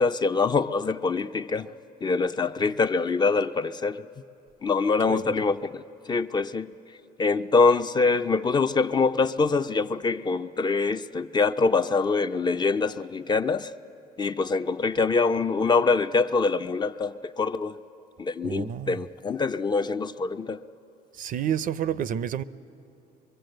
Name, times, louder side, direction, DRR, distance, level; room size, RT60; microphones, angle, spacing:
voice 1, 0.0-1.7 2.0-4.0 4.6-5.8 6.1-6.7 7.2-13.7 14.2-17.7 18.2-20.6, left 4 dB, 25° left, 0.5 m, -24 dB
voice 2, 18.4-19.0 21.2-22.4, right 9 dB, 55° right, 0.6 m, -29 dB
24.5 x 23.5 x 7.8 m
cardioid pair, 110°, 17 cm